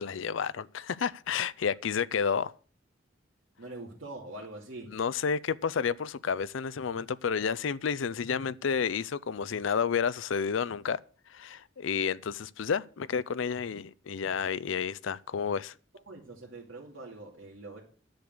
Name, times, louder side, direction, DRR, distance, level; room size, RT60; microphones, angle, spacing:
voice 1, 0.0-2.5 4.9-11.0 11.3-15.7, left 6 dB, 80° left, 0.5 m, -31 dB
voice 2, 3.6-4.9 16.1-17.8, right 2 dB, 80° right, 2.6 m, -44 dB
10.5 x 6.7 x 7.9 m
head